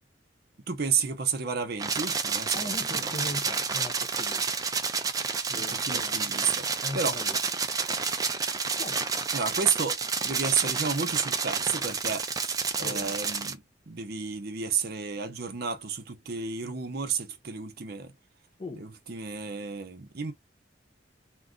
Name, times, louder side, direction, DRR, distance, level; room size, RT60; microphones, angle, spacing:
voice 1, 0.7-3.2 5.5-6.7 6.9-7.2 9.3-13.6 13.9-18.1 18.7-20.3, right 6 dB, 55° right, 0.7 m, -31 dB
sound 1, 1.8-13.5, right 5 dB, 20° right, 0.4 m, -30 dB
voice 2, 2.5-4.4 5.5-6.3 6.8-7.4 8.8-9.1 12.8-13.2 18.6-18.9, left 2 dB, 30° left, 0.5 m, -39 dB
2.5 x 2.3 x 3.7 m
head